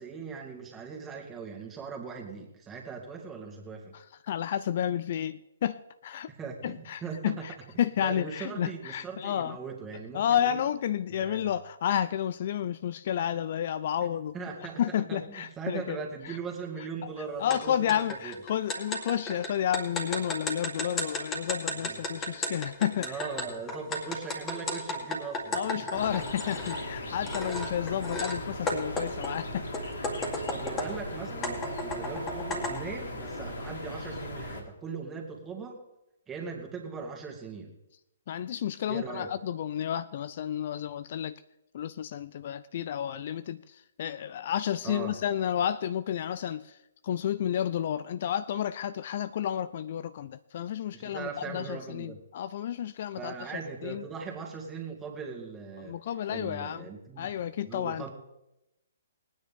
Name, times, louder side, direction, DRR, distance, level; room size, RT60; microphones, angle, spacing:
voice 1, 0.0-3.9 6.3-7.7 8.0-10.6 11.1-11.5 14.3-14.8 15.1-18.3 21.8-22.0 22.9-25.9 30.5-35.8 36.3-37.7 38.9-39.3 44.8-45.2 50.9-52.2 53.2-56.0 56.3-57.3 57.6-58.1, right 5 dB, 15° right, 0 dB, 2.3 m, -40 dB
voice 2, 3.9-6.3 6.6-9.6 10.1-14.3 14.8-16.0 16.3-16.4 17.0-17.1 17.4-23.2 25.5-29.7 38.3-41.4 41.7-46.8 47.0-53.3 53.8-54.0 55.8-56.9 57.2-58.1, left 10 dB, 45° left, 14 dB, 0.4 m, -31 dB
sound 1, 17.5-17.6 17.9-26.8 27.3-28.4 28.7-31.0 31.4-32.8, left 1 dB, 15° left, 2.2 m, -34 dB
sound 2, 25.9-34.6, left 1 dB, 65° left, 2.6 m, -38 dB
20.5 x 9.5 x 3.7 m, 0.90 s
figure-of-eight pair, 125°, 0 cm